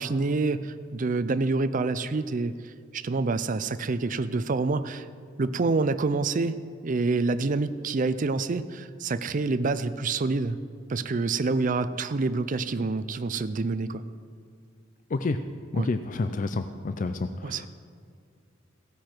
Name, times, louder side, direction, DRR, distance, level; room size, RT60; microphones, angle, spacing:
voice 1, 0.0-5.1 5.4-10.6 10.9-14.0 15.8-15.9 17.4-17.7, right 3 dB, 45° right, 12 dB, 0.5 m, -27 dB
voice 2, 15.7-17.7, left 3 dB, 40° left, 9 dB, 0.4 m, -29 dB
16.5 x 9.6 x 4.5 m, 2.2 s
head